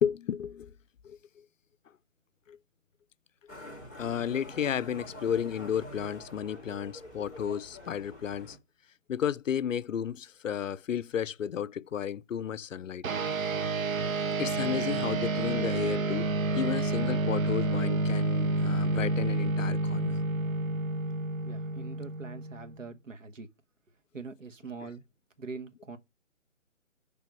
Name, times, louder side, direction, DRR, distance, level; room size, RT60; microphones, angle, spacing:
voice 1, 0.0-0.7 1.0-1.2 2.5-2.6 4.0-8.6 9.1-13.1 14.4-20.2, left 8 dB, 75° left, 0.5 m, -33 dB
Motorcycle, 3.5-8.6, equal, 5° right, 4.0 m, -46 dB
sound 1, 13.0-22.8, right 2 dB, 90° right, 0.8 m, -29 dB
voice 2, 21.4-23.5 24.1-25.0 25.4-26.0, right 4 dB, 70° right, 1.2 m, -43 dB
6.2 x 3.4 x 5.8 m
hypercardioid pair, 170°, 40 cm